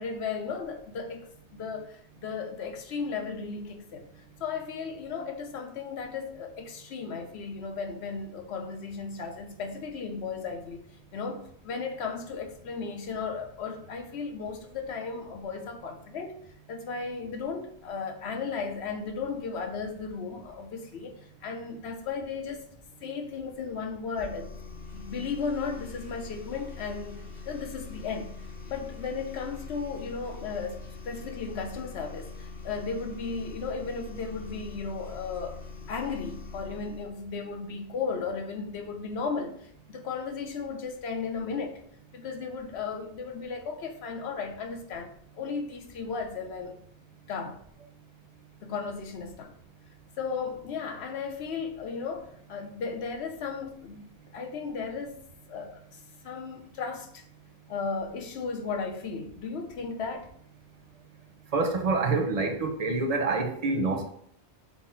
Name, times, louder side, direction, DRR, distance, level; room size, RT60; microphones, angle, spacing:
voice 1, 0.0-4.1 4.4-10.8 11.1-16.4 16.7-22.7 23.0-24.5 24.9-28.3 28.7-35.6 35.9-41.8 42.1-46.7 47.3-47.6 48.6-49.5 50.2-55.2 55.5-57.2 57.7-60.3, left 5 dB, 75° left, 0.9 m, -35 dB
sound 1, 24.1-37.1, left 4 dB, 45° left, 2.2 m, -43 dB
voice 2, 61.5-64.1, right 3 dB, 40° right, 0.6 m, -27 dB
5.7 x 2.1 x 4.3 m
omnidirectional pair, 1.1 m